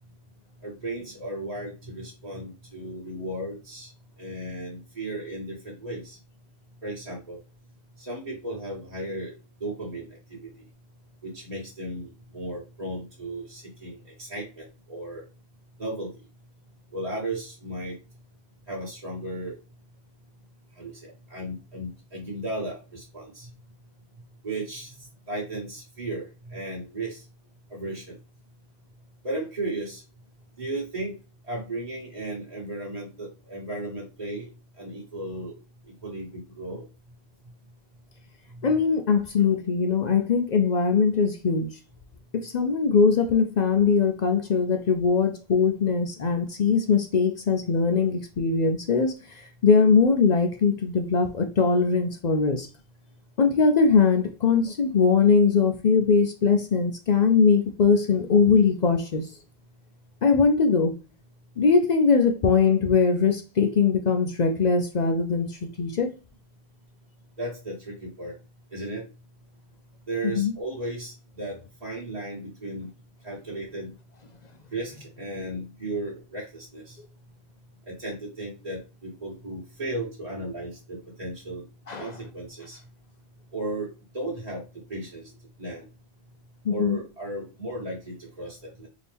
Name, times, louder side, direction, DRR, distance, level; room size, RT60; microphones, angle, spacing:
voice 1, 0.6-3.9 4.2-6.2 6.8-7.4 8.0-9.3 9.6-10.5 11.2-15.2 15.8-16.1 16.9-18.0 18.7-19.6 20.8-23.5 24.4-27.2 27.7-28.2 29.2-30.0 30.6-31.1 31.5-34.5 34.8-35.6 36.0-36.8 67.4-68.3 68.7-69.0 70.1-72.9 73.2-73.9 74.7-77.0 77.9-81.6 82.0-82.8 83.5-83.9 84.1-84.6 84.9-85.3 85.6-85.9 86.7-88.9, right 1 dB, 35° right, 1.4 m, -35 dB
voice 2, 38.6-41.7 42.3-52.7 53.4-59.2 60.2-60.9 61.6-66.1 70.2-70.5 81.9-82.1 86.6-87.0, left 5 dB, 55° left, 0.5 m, -21 dB
4.2 x 2.9 x 3.4 m
omnidirectional pair, 1.1 m